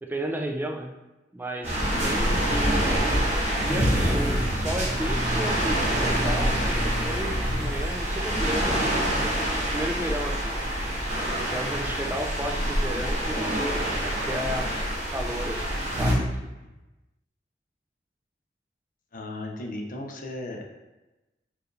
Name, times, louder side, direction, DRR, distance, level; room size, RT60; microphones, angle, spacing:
voice 1, 0.0-1.0 1.3-3.0 3.6-10.6 11.3-14.8 15.1-16.5, right 1 dB, 10° right, 3 dB, 0.3 m, -33 dB
sound 1, 1.6-16.1, equal, 45° right, 1.0 m, -26 dB
voice 2, 1.9-2.5 15.6-15.7 16.1-16.2 19.1-20.7, left 1 dB, 50° left, 1 dB, 0.6 m, -36 dB
4.6 x 2.5 x 3.1 m, 1.1 s
head